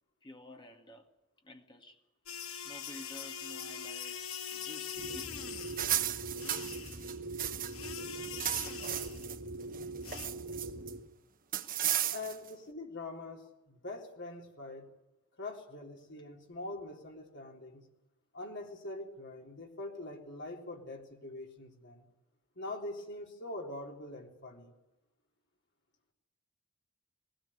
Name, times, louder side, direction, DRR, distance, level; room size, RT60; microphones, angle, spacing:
voice 1, 0.2-1.1 1.4-2.0 2.3-5.9 10.1-10.4 11.8-12.1, left 1 dB, 20° left, 2.0 m, -53 dB
sound 1, 2.3-5.9 6.4-7.1 7.7-9.3 10.0-10.3, left 8 dB, 80° left, 1.7 m, -43 dB
sound 2, 5.0-11.0, right 2 dB, 70° right, 2.7 m, -42 dB
sound 3, 5.7-7.9 8.2-9.4 9.7-10.9 11.5-12.5, right 11 dB, 40° right, 1.0 m, -34 dB
voice 2, 12.1-14.9 15.4-17.9 18.3-22.1 22.6-24.8, left 2 dB, 55° left, 3.5 m, -43 dB
19.5 x 16.5 x 9.9 m
head